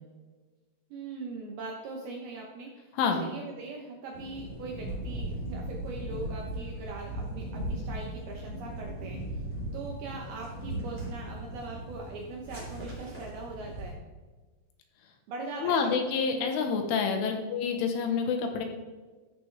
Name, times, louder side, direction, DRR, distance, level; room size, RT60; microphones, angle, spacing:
voice 1, 0.9-9.2 9.7-14.0 15.3-16.0 16.3-16.5 17.2-17.4, right 3 dB, 75° right, -1 dB, 2.4 m, -41 dB
sound 1, 4.1-13.9, right 1 dB, 15° right, 2.6 m, -38 dB
voice 2, 15.6-18.7, left 5 dB, 80° left, 4 dB, 3.5 m, -28 dB
13.5 x 6.8 x 3.4 m, 1.3 s
omnidirectional pair, 5.8 m